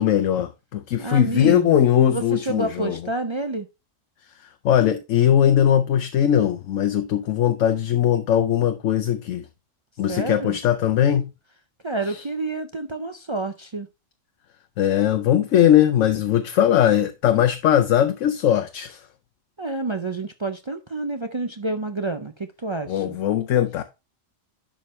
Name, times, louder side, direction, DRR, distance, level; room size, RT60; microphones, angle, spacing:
voice 1, 0.0-3.0 4.6-9.4 10.0-11.3 14.8-19.0 22.9-23.8, left 10 dB, 75° left, 1.0 m, -20 dB
voice 2, 1.0-1.8 2.1-3.7 10.1-10.6 11.8-13.9 19.6-23.2, right 3 dB, 40° right, 0.4 m, -29 dB
11.0 x 5.1 x 3.1 m
omnidirectional pair, 1.3 m